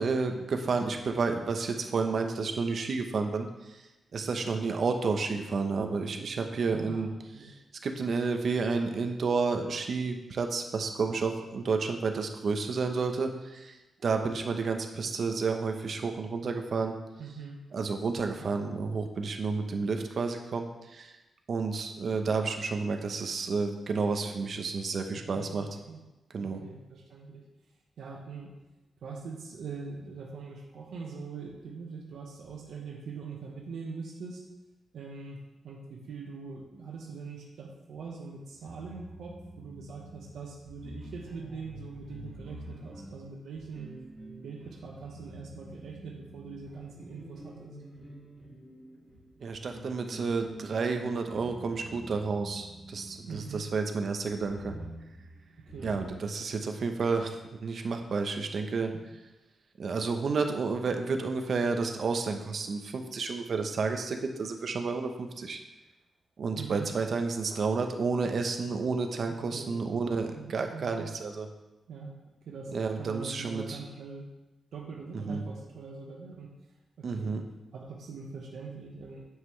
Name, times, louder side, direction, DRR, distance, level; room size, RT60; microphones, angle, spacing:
voice 1, 0.0-3.8 4.1-7.1 7.4-13.8 14.0-16.9 17.7-21.1 21.5-25.7 26.3-26.6 49.4-54.8 55.8-58.9 59.8-65.6 66.4-71.5 72.7-73.8 75.1-75.4 77.0-77.4, right 4 dB, 50° right, 5 dB, 0.8 m, -31 dB
voice 2, 6.7-7.5 17.2-17.6 25.3-26.0 26.4-27.5 28.0-28.5 29.0-34.4 34.9-43.9 44.4-47.7 53.3-53.6 55.7-56.0 58.9-59.0 66.6-66.9 69.5-69.9 70.3-71.1 71.9-72.1 72.4-74.3 74.7-76.5 77.0-77.4 77.7-79.3, right 4 dB, 85° right, -1 dB, 1.2 m, -43 dB
sound 1, 38.3-53.7 54.2-56.1, right 1 dB, ahead, 2.3 m, -48 dB
9.3 x 7.4 x 3.2 m, 1.0 s
wide cardioid pair, 145°, 0 cm